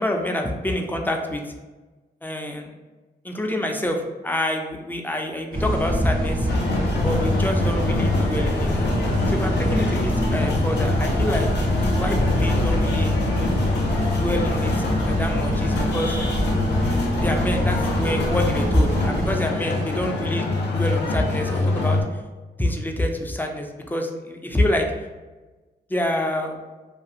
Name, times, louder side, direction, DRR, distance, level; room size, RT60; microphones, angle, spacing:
voice 1, 0.0-1.5 2.2-2.7 3.2-6.5 7.0-8.7 9.3-11.5 12.0-13.1 14.1-16.2 17.2-20.5 20.8-22.2 22.6-24.9 25.9-26.6, left 1 dB, 10° left, 3 dB, 0.4 m, -26 dB
sound 1, 5.5-19.4, equal, 55° right, 1.3 m, -25 dB
sound 2, 6.5-22.0, left 3 dB, 75° left, 0.5 m, -25 dB
2.4 x 2.3 x 2.7 m, 1.2 s
cardioid pair, 65°, 18 cm